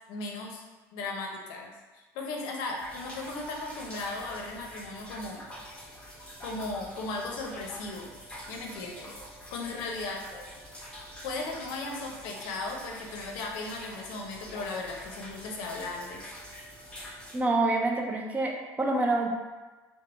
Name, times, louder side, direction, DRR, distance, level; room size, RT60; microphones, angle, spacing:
voice 1, 0.1-0.6 0.9-5.4 6.4-8.1 8.5-10.2 11.2-16.3, left 3 dB, 75° left, 1 dB, 0.5 m, -37 dB
sound 1, 2.8-17.4, equal, 15° left, 0.9 m, -46 dB
voice 2, 17.3-19.3, right 2 dB, 20° right, 2 dB, 0.4 m, -27 dB
3.3 x 2.0 x 2.4 m, 1.2 s
supercardioid pair, 110°, 8 cm